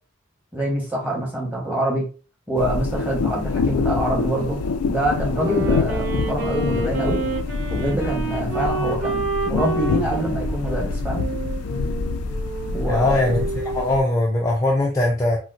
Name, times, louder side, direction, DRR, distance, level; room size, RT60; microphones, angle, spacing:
voice 1, 0.5-2.0 2.5-4.6 4.9-7.2 7.7-11.2 12.7-13.2, right 1 dB, 10° right, -3 dB, 1.1 m, -25 dB
sound 1, 2.6-14.0, left 4 dB, 85° left, 0.4 m, -26 dB
Wind instrument woodwind instrument, 5.3-13.9, right 3 dB, 40° right, 1.4 m, -29 dB
voice 2, 12.9-15.4, left 2 dB, 15° left, -3 dB, 0.4 m, -21 dB
4.2 x 2.1 x 2.5 m, 0.35 s
head